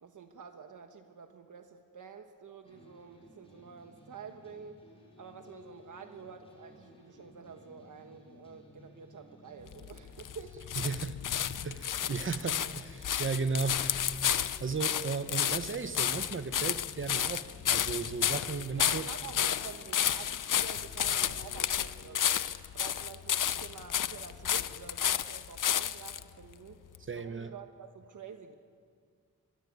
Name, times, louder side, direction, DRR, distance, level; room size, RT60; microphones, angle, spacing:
voice 1, 0.0-4.8 5.2-10.5 12.1-12.3 18.8-26.8 27.1-28.6, right 6 dB, 70° right, 6 dB, 1.4 m, -49 dB
sound 1, 2.6-22.1, left 2 dB, 15° left, 5.5 m, -57 dB
sound 2, 9.7-26.2 26.9-27.0, left 9 dB, 75° left, 0.7 m, -32 dB
voice 2, 10.8-11.2 11.6-14.0 14.3-19.0 27.0-27.5, right 4 dB, 40° right, 11 dB, 0.9 m, -35 dB
24.0 x 20.5 x 9.4 m, 2.1 s
wide cardioid pair, 155°, 31 cm